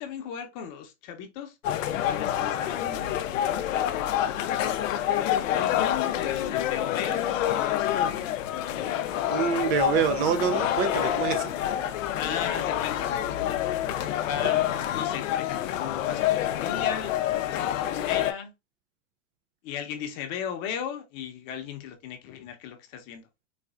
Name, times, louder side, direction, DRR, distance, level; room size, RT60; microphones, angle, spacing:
voice 1, 0.0-1.5 1.9-4.5 5.5-8.3 12.1-13.1 14.2-17.1 17.5-18.5 19.6-23.3, left 8 dB, 40° left, 0.8 m, -36 dB
sound 1, 1.6-18.3, left 11 dB, 75° left, 0.6 m, -27 dB
voice 2, 9.3-11.5, right 7 dB, 40° right, 0.4 m, -26 dB
4.1 x 2.3 x 2.3 m
supercardioid pair, 130°, 39 cm